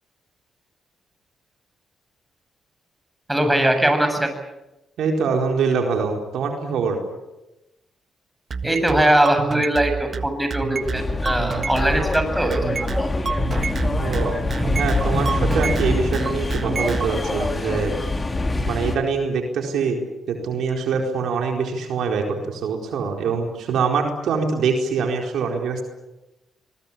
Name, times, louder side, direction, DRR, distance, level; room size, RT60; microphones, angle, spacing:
voice 1, 3.3-4.3 8.6-13.1, right 1 dB, 10° right, 6 dB, 7.7 m, -21 dB
voice 2, 5.0-7.0 14.0-14.5 14.7-17.9 18.7-20.0 20.3-25.8, right 5 dB, 75° right, 3 dB, 4.4 m, -24 dB
sound 1, 8.5-17.1, right 5 dB, 50° right, 1.6 m, -28 dB
sound 2, 10.8-19.0, left 2 dB, 25° left, 4.1 m, -24 dB
24.0 x 21.5 x 8.7 m, 0.98 s
supercardioid pair, 55°, 0 cm